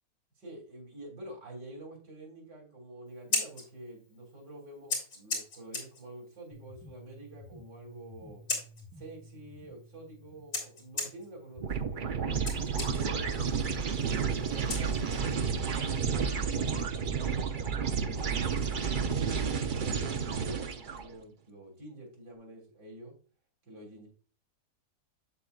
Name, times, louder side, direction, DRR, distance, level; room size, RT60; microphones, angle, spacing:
voice 1, 0.4-8.4 8.9-12.4 12.9-17.5 18.0-18.9 19.2-23.1 23.6-24.1, right 1 dB, 90° right, 0 dB, 3.5 m, -48 dB
Scissors, 3.1-15.4, left 2 dB, 55° left, 3.5 m, -40 dB
sound 1, 6.5-12.5, left 1 dB, 5° left, 3.1 m, -54 dB
sound 2, 11.6-21.0, right 6 dB, 55° right, 0.5 m, -31 dB
8.3 x 7.8 x 2.4 m, 0.38 s
omnidirectional pair, 1.7 m